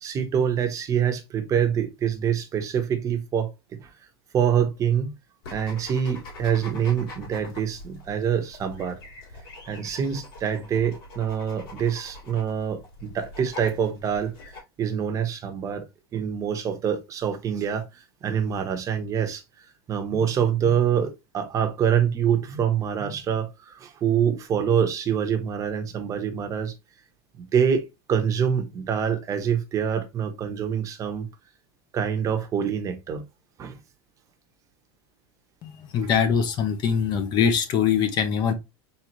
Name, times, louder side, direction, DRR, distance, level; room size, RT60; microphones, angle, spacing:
voice 1, 0.0-3.5 3.8-3.9 4.3-5.1 5.5-9.0 9.7-14.3 14.8-15.8 16.1-17.9 18.2-19.4 19.9-26.7 27.4-31.3 31.9-33.2 33.6-33.8, right 8 dB, 25° right, 1.0 m, -25 dB
sound 1, 5.4-14.6, left 2 dB, 70° left, 2.8 m, -43 dB
voice 2, 35.6-38.5, left 7 dB, 35° left, 0.9 m, -23 dB
4.6 x 3.4 x 3.0 m
supercardioid pair, 145°, 13 cm